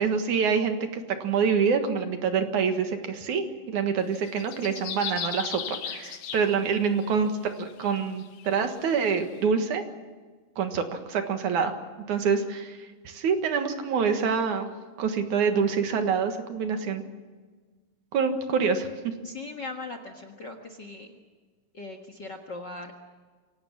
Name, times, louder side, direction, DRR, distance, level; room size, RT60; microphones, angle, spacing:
voice 1, 0.0-9.8 10.6-11.7 12.1-14.7 15.0-17.0 18.1-18.9, right 6 dB, 65° right, 7 dB, 2.9 m, -26 dB
sound 1, 4.1-7.1 7.7-9.2, left 8 dB, 70° left, 2.8 m, -37 dB
voice 2, 19.2-21.1 21.7-22.9, left 3 dB, 45° left, 6 dB, 1.6 m, -39 dB
25.5 x 17.5 x 7.4 m, 1.4 s
omnidirectional pair, 3.9 m